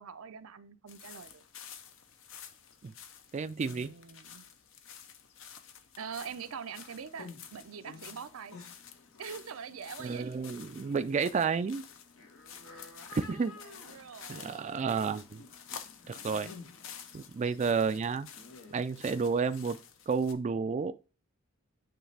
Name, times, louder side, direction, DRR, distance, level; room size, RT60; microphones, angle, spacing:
voice 1, 0.0-1.4 3.6-4.5 6.0-8.6 9.2-10.6 12.7-13.2 13.6-15.2, right 6 dB, 90° right, 0.6 m, -44 dB
sound 1, 0.9-20.3, left 8 dB, 65° left, 0.8 m, -51 dB
voice 2, 3.3-3.9 10.0-11.8 13.1-13.6 14.3-15.4 16.1-16.5 17.1-18.3 18.7-19.8 20.1-20.9, right 5 dB, 35° right, 0.3 m, -31 dB
sound 2, 6.1-19.8, left 3 dB, 85° left, 1.6 m, -54 dB
8.6 x 3.3 x 3.3 m
head